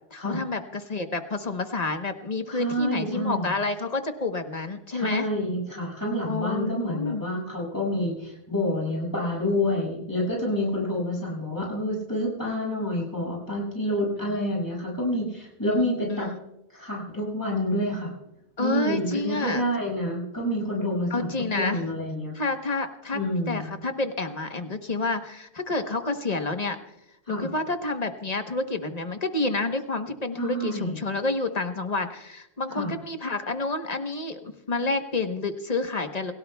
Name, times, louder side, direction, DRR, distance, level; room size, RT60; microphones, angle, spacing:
voice 1, 0.1-5.3 6.2-7.2 15.6-16.4 18.6-19.6 21.1-21.8 22.3-23.2 23.5-26.8 27.3-36.3, left 3 dB, 40° left, 7 dB, 1.1 m, -29 dB
voice 2, 2.5-3.5 4.9-16.3 16.7-18.1 18.6-22.4 23.1-23.6 27.3-27.5 30.4-31.0 32.7-32.9, left 1 dB, 20° left, -5 dB, 6.7 m, -28 dB
28.0 x 17.0 x 2.3 m, 0.89 s
omnidirectional pair, 1.1 m